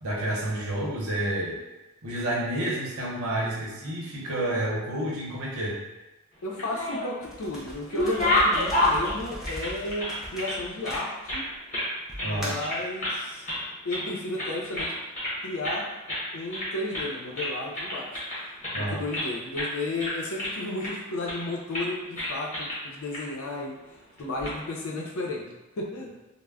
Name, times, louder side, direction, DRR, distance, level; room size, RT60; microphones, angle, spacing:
voice 1, 0.0-1.6 2.0-5.8 12.2-12.6 18.7-19.1, right 1 dB, 80° right, -5 dB, 0.8 m, -29 dB
voice 2, 6.4-11.4 12.2-13.5 13.8-14.9 15.4-15.8 16.3-18.1 18.7-23.8 24.2-25.5 25.8-26.1, left 2 dB, 75° left, -1 dB, 0.5 m, -33 dB
sound 1, 6.4-7.3 7.6-10.6 10.8-11.9 12.2-12.3 12.6-13.2 13.4-14.1 14.4-15.4 15.6-15.8 16.1-16.2 16.5-17.1 17.4-19.3 19.5-19.7 20.0-20.9 21.3-21.5 21.7-21.9 22.2-22.8 23.1-23.2 24.2-24.5, left 1 dB, 35° left, 0.9 m, -29 dB
sound 2, 7.2-11.5 12.1-12.8, equal, ahead, 0.3 m, -40 dB
2.2 x 2.0 x 3.5 m, 1.1 s
head